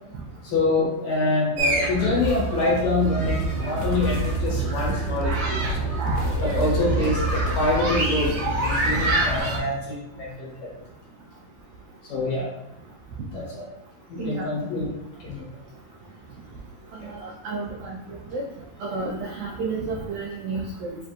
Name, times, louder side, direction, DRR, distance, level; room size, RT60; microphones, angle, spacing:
voice 1, 0.4-5.8 6.4-10.7 12.1-12.5 13.3-13.6 14.1-14.9 15.2-15.4 17.0-17.1, left 2 dB, 65° left, -5 dB, 2.2 m, -26 dB
sound 1, 1.6-9.6, right 3 dB, 70° right, 1.5 m, -26 dB
sound 2, 3.3-9.4, left 5 dB, 90° left, 2.4 m, -31 dB
voice 2, 14.2-14.5 17.1-18.4 18.8-21.0, right 3 dB, 85° right, -3 dB, 1.7 m, -31 dB
7.1 x 2.5 x 2.4 m, 0.83 s
omnidirectional pair, 4.0 m